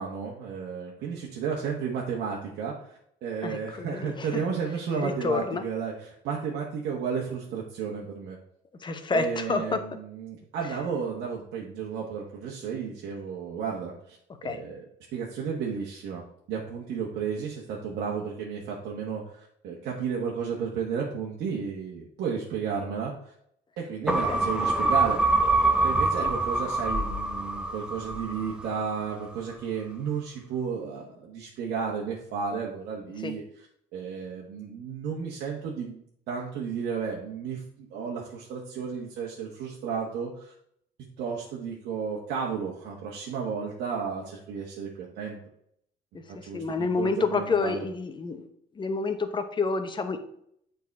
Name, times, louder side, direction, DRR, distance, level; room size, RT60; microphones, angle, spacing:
voice 1, 0.0-8.4 9.1-14.2 14.4-14.8 15.1-16.2 16.5-23.3 23.8-25.2 25.8-33.4 33.9-40.5 41.2-45.4 46.3-47.8, right 6 dB, 75° right, -2 dB, 1.3 m, -33 dB
voice 2, 3.4-4.4 5.0-5.6 8.8-9.8 14.4-14.6 24.1-24.5 26.2-26.3 33.2-33.4 46.1-48.5 48.7-50.2, left 4 dB, 25° left, 8 dB, 0.9 m, -29 dB
sound 1, 24.1-28.7 29.1-29.2, right 2 dB, 5° right, 0.9 m, -25 dB
7.3 x 4.0 x 5.3 m, 0.70 s
cardioid pair, 110°, 17 cm